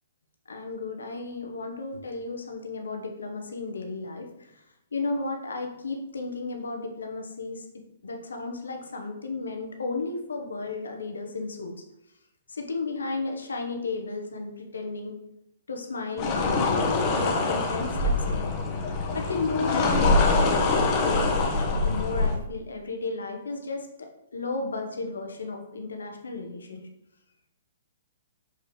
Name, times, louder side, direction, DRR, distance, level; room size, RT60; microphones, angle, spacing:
voice 1, 0.5-4.5 4.9-11.7 12.5-15.2 15.7-16.7 17.2-18.6 19.1-26.8, left 3 dB, 85° left, 3 dB, 1.1 m, -33 dB
sound 1, 16.2-22.4, left 3 dB, 35° left, 1.3 m, -24 dB
6.5 x 4.9 x 3.2 m, 0.86 s
hypercardioid pair, 130°, 0 cm